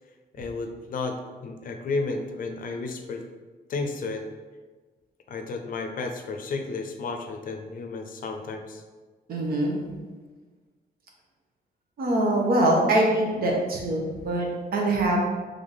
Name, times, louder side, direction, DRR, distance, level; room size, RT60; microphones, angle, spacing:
voice 1, 0.3-3.2 3.7-4.2 5.3-8.8, left 3 dB, 60° left, 5 dB, 0.5 m, -32 dB
voice 2, 9.3-9.8 12.0-15.2, right 1 dB, 65° right, -1 dB, 1.0 m, -23 dB
3.5 x 3.3 x 3.9 m, 1.4 s
wide cardioid pair, 150°, 16 cm